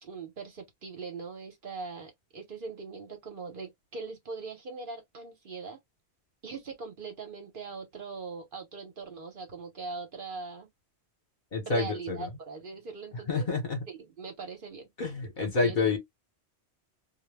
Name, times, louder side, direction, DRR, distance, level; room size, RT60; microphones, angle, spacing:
voice 1, 0.0-5.8 6.4-10.7 11.6-13.5 13.9-15.2 15.5-16.0, right 4 dB, 55° right, 0.9 m, -41 dB
voice 2, 11.5-12.3 13.3-13.8 15.0-16.0, left 4 dB, 50° left, 0.9 m, -28 dB
2.2 x 2.1 x 3.1 m
omnidirectional pair, 1.1 m